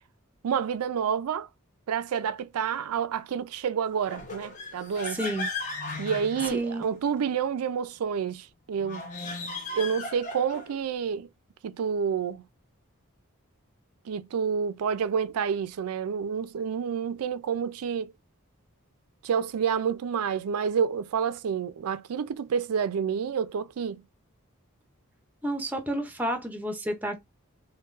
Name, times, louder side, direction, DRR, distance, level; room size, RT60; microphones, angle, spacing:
voice 1, 0.4-1.5 1.9-5.2 6.0-9.4 9.7-11.3 11.6-12.4 14.1-18.1 19.2-24.0, right 7 dB, 85° right, 0.4 m, -29 dB
sound 1, 4.0-7.2 8.8-10.8, left 3 dB, 35° left, 0.8 m, -36 dB
voice 2, 5.1-5.5 6.5-6.9 25.4-27.2, right 1 dB, 5° right, 0.6 m, -30 dB
5.3 x 2.2 x 2.4 m
head